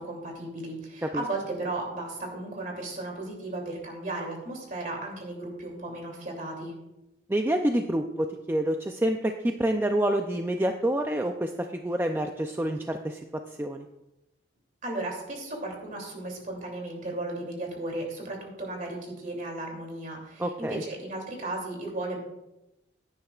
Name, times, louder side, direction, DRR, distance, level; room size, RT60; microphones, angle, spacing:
voice 1, 0.0-6.7 14.8-22.2, right 2 dB, 45° right, 1 dB, 2.9 m, -35 dB
voice 2, 7.3-13.2 13.6-13.9 20.4-20.8, right 1 dB, 10° right, 5 dB, 0.4 m, -27 dB
16.5 x 9.7 x 2.4 m, 0.92 s
head